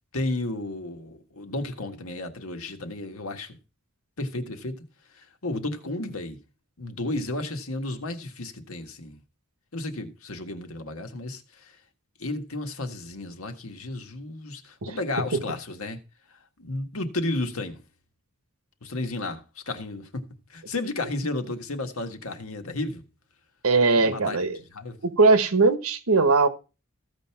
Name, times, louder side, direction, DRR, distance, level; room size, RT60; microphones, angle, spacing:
voice 1, 0.1-3.6 4.2-4.9 5.1-6.4 6.8-9.2 9.7-11.7 12.2-16.0 16.6-17.8 18.8-20.2 20.5-23.0 23.9-24.4 24.7-25.0, left 2 dB, 80° left, 1.6 m, -33 dB
voice 2, 23.6-24.6 25.0-26.5, right 3 dB, 80° right, 1.3 m, -20 dB
15.0 x 5.3 x 5.8 m
head